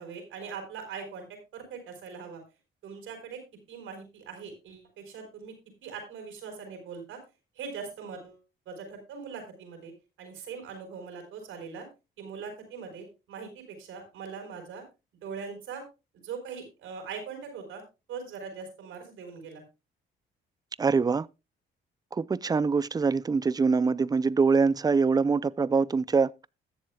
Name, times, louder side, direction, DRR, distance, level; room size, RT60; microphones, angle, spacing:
voice 1, 0.0-2.4 2.8-3.4 3.7-5.5 5.8-7.2 7.5-8.4 8.7-9.9 10.2-11.9 12.2-14.8 15.2-15.8 16.1-17.8 18.1-19.6, right 5 dB, 85° right, 4.5 m, -41 dB
voice 2, 20.8-21.3 22.1-26.3, right 4 dB, 20° right, 0.4 m, -24 dB
21.0 x 7.2 x 2.3 m
cardioid pair, 90°, 20 cm